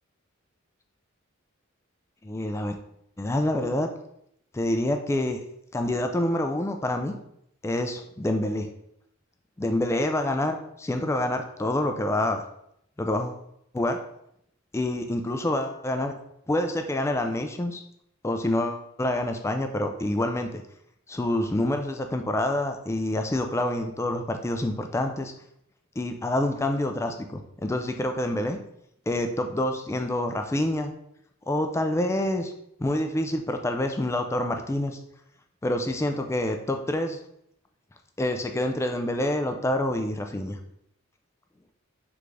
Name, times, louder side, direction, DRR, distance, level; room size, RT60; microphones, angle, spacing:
voice 1, 2.2-2.8 3.2-3.9 4.5-5.4 5.7-7.1 7.6-8.7 9.6-12.4 13.0-13.4 13.7-14.0 14.7-16.1 16.5-17.8 18.2-20.6 21.1-25.3 26.0-28.6 29.1-30.9 31.5-32.5 32.8-35.0 35.6-37.2 38.2-40.6, left 1 dB, 15° left, 5 dB, 0.3 m, -27 dB
3.8 x 3.4 x 3.2 m, 0.75 s
head